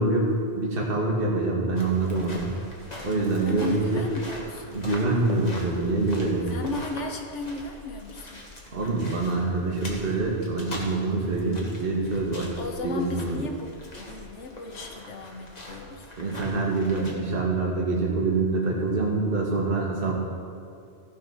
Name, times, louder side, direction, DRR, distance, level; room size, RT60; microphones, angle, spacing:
voice 1, 0.0-2.5 3.0-4.0 4.7-6.5 8.7-12.5 12.8-13.4 16.2-20.2, right 3 dB, 55° right, -2 dB, 1.7 m, -25 dB
sound 1, 1.8-17.1, left 1 dB, 35° left, 1.6 m, -42 dB
voice 2, 3.4-4.9 6.5-8.4 12.6-16.1, left 3 dB, 90° left, 4 dB, 1.4 m, -35 dB
15.0 x 5.4 x 5.6 m, 2.4 s
omnidirectional pair, 1.2 m